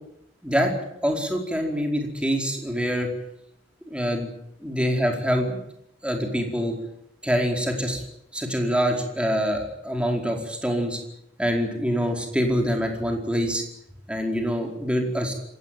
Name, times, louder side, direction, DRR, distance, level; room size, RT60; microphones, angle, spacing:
voice 1, 0.4-0.7 1.0-3.1 3.9-4.3 4.6-5.6 6.0-6.7 7.2-8.0 8.3-11.0 11.4-13.6 14.1-15.3, equal, 5° right, 2 dB, 4.6 m, -25 dB
27.0 x 16.0 x 9.1 m, 0.79 s
head